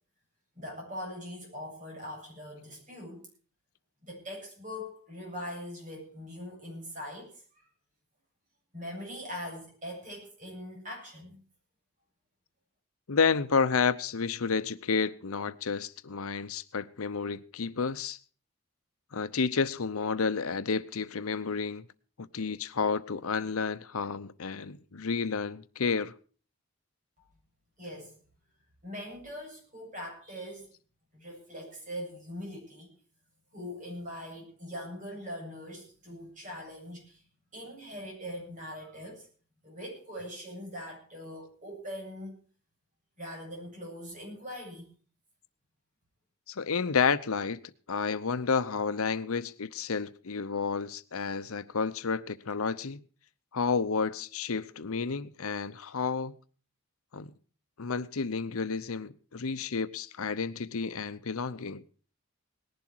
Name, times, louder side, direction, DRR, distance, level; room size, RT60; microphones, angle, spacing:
voice 1, 0.6-3.3 4.0-7.4 8.7-11.4 27.8-28.1 28.8-30.7 31.1-32.9 33.5-37.2 37.5-39.3 39.6-42.3 43.2-44.9, equal, 35° right, 7.9 m, -42 dB
voice 2, 13.1-18.2 19.1-21.8 22.2-26.1 46.5-47.6 47.9-53.0 53.5-56.3 57.1-57.3 57.8-61.8, left 5 dB, 75° left, 0.7 m, -30 dB
19.0 x 11.5 x 4.6 m
head